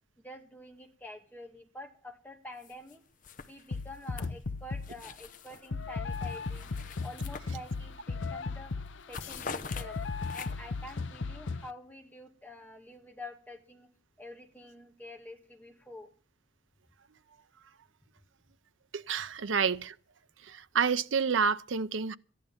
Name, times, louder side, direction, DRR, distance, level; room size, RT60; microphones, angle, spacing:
voice 1, 0.2-3.0 3.5-6.7 7.0-8.7 9.1-10.0 10.3-13.9 14.2-16.1, left 1 dB, 10° left, 2.1 m, -47 dB
sound 1, 2.6-2.9 3.2-5.7 6.1-8.0 8.4-8.6 8.9-10.8, left 5 dB, 40° left, 0.8 m, -45 dB
sound 2, 3.7-5.0 5.7-11.7, left 4 dB, 70° left, 0.7 m, -36 dB
voice 2, 18.9-19.9 20.4-22.2, right 6 dB, 80° right, 0.7 m, -29 dB
14.0 x 11.0 x 7.2 m
head